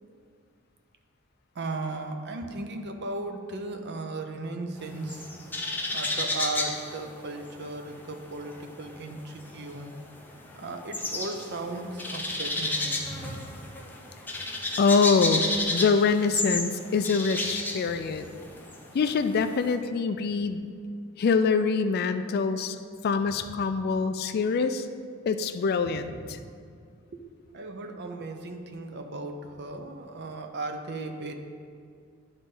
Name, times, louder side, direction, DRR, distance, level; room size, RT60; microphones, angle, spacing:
voice 1, 1.6-5.3 5.9-9.9 10.5-13.5 17.9-18.0 26.0-26.5 27.1-27.2 27.5-31.3, right 2 dB, 55° right, 5 dB, 0.6 m, -36 dB
sound 1, 4.8-7.9 8.1-19.7, left 2 dB, 10° left, 0.7 m, -32 dB
voice 2, 14.8-18.3 18.9-20.6 21.2-22.8 23.0-24.9 25.3-26.4, left 5 dB, 50° left, 10 dB, 0.3 m, -25 dB
11.0 x 4.0 x 3.7 m, 2.2 s
head